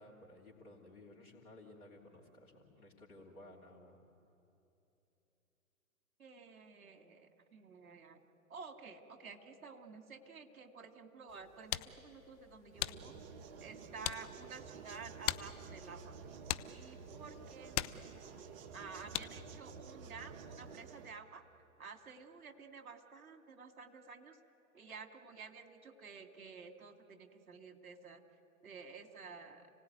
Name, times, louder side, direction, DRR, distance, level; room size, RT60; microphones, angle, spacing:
voice 1, 0.0-4.0, left 1 dB, 85° left, -4 dB, 3.5 m, -56 dB
voice 2, 6.2-8.2 8.5-13.1 13.6-16.1 16.7-17.8 18.7-21.4 21.8-24.4 24.7-28.2 28.6-29.7, right 5 dB, 70° right, 5 dB, 2.6 m, -52 dB
sound 1, 11.3-19.6, left 16 dB, 25° left, 0.6 m, -44 dB
sound 2, 12.7-21.2, right 5 dB, 40° right, 1.4 m, -51 dB
29.5 x 18.0 x 9.3 m, 2.9 s
figure-of-eight pair, 115°, 43 cm